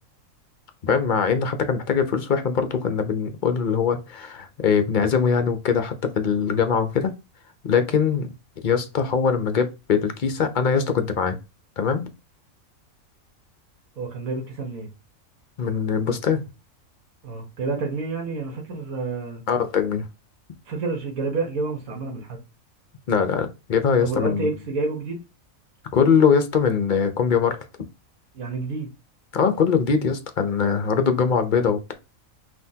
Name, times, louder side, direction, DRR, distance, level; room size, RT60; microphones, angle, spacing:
voice 1, 0.9-7.1 7.6-8.3 8.6-11.4 11.8-12.0 15.6-16.4 19.5-20.1 23.1-24.5 25.9-27.6 29.3-31.9, left 6 dB, 50° left, 0.6 m, -22 dB
voice 2, 14.0-14.9 17.2-19.4 20.7-22.4 24.0-25.2 28.3-28.9, right 3 dB, 80° right, 1.5 m, -29 dB
5.6 x 2.8 x 2.7 m
omnidirectional pair, 1.4 m